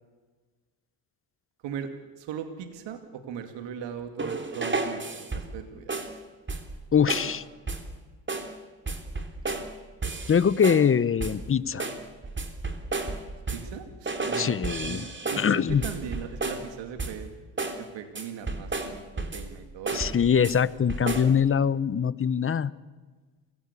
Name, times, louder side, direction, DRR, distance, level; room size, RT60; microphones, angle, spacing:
voice 1, 2.2-5.9 13.5-17.3 17.8-20.2, right 8 dB, 70° right, 7 dB, 2.6 m, -39 dB
sound 1, 4.2-5.6 5.9-6.2 6.5-6.8 7.1-7.4 7.7-7.9 8.3-8.6 8.9-9.7 10.0-10.9 11.2-11.5 11.8-13.8 14.1-16.7 17.0-17.3 17.6-17.8 18.1-19.5 19.9-20.6 20.9-21.4, right 3 dB, 25° right, 3.3 m, -32 dB
voice 2, 6.9-7.4 9.5-9.6 10.3-11.9 14.4-15.1 15.4-15.8 19.9-22.7, left 7 dB, 30° left, 18 dB, 1.0 m, -23 dB
27.5 x 17.0 x 8.4 m, 1.4 s
supercardioid pair, 80°, 45 cm